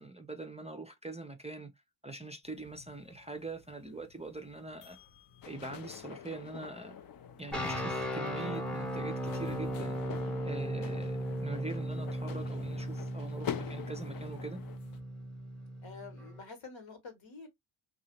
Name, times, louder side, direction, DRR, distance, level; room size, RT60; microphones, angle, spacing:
voice 1, 0.0-1.7 2.0-5.0 5.4-7.0 7.4-10.0 10.4-14.6, right 3 dB, 15° right, 0.4 m, -43 dB
sound 1, 2.4-15.0, left 7 dB, 85° left, 0.7 m, -53 dB
sound 2, 5.4-14.8, left 9 dB, 45° left, 0.5 m, -46 dB
sound 3, 7.5-16.4, equal, ahead, 0.8 m, -37 dB
voice 2, 15.8-17.5, left 4 dB, 65° left, 1.3 m, -48 dB
2.7 x 2.4 x 2.8 m
supercardioid pair, 50°, 49 cm